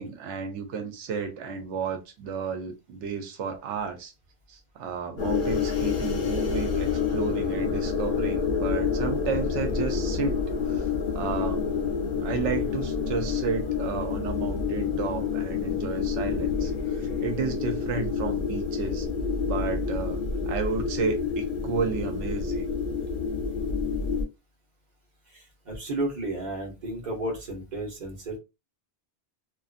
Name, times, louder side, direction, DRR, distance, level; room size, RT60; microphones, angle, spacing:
voice 1, 0.0-4.1 4.5-10.9 11.1-11.7 12.2-19.1 19.4-20.2 20.5-22.7, right 5 dB, 85° right, 0.9 m, -32 dB
sound 1, 5.2-24.2, left 6 dB, 60° left, 0.8 m, -28 dB
voice 2, 25.3-28.4, right 1 dB, 45° right, 1.0 m, -33 dB
2.5 x 2.3 x 2.4 m
omnidirectional pair, 1.2 m